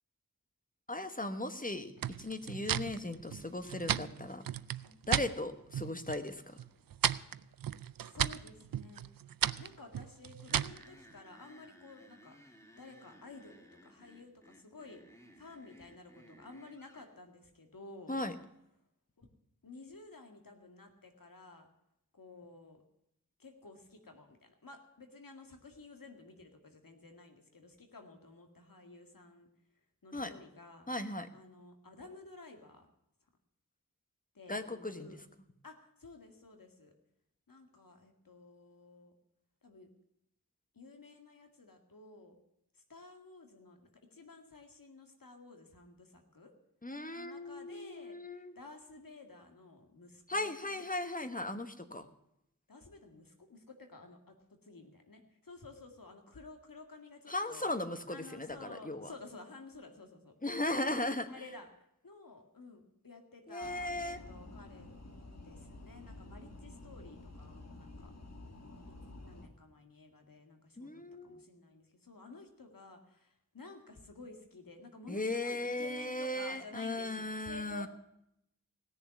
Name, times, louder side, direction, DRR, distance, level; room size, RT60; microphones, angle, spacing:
voice 1, 0.9-1.9 2.2-4.4 5.1-6.6 18.1-18.3 30.1-30.3 30.9-31.3 34.5-35.1 46.8-48.6 50.3-52.1 57.3-59.1 60.4-61.3 63.5-64.2 70.8-71.5 75.1-77.9, left 2 dB, 25° left, 9 dB, 1.4 m, -37 dB
sound 1, 2.0-5.3 5.7-6.3 6.6-10.8, right 9 dB, 90° right, 0.5 m, -35 dB
voice 2, 8.0-9.1 9.6-12.4 12.8-15.0 15.4-18.1 19.2-19.3 19.6-21.7 22.1-22.8 23.4-29.5 30.0-30.9 31.3-32.9 34.3-35.2 35.6-36.9 37.5-39.1 39.6-39.9 40.7-42.4 42.7-46.5 47.1-48.2 48.6-50.9 52.7-54.4 54.6-57.6 58.1-60.4 61.3-64.9 65.4-68.1 68.9-69.0 69.2-70.9 71.2-77.9, left 3 dB, 85° left, 4 dB, 2.2 m, -53 dB
sound 2, 10.5-17.1, equal, 10° left, 2.3 m, -58 dB
sound 3, 63.6-69.5, left 2 dB, 50° left, 2.1 m, -50 dB
17.5 x 7.0 x 9.5 m, 0.79 s
wide cardioid pair, 45°, 33 cm